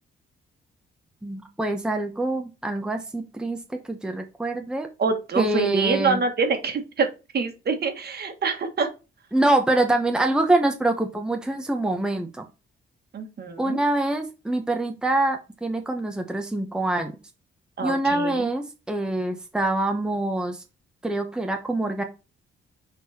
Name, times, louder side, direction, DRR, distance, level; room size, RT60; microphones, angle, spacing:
voice 1, 1.2-4.9 5.4-6.2 9.3-12.4 13.6-17.1 17.8-20.6 21.0-22.0, right 2 dB, 5° right, 4 dB, 1.0 m, -25 dB
voice 2, 5.0-7.1 7.3-8.9 13.1-13.8 17.8-18.5, right 4 dB, 50° right, 6 dB, 1.7 m, -25 dB
6.2 x 4.5 x 4.3 m, 0.28 s
cardioid pair, 130°, 21 cm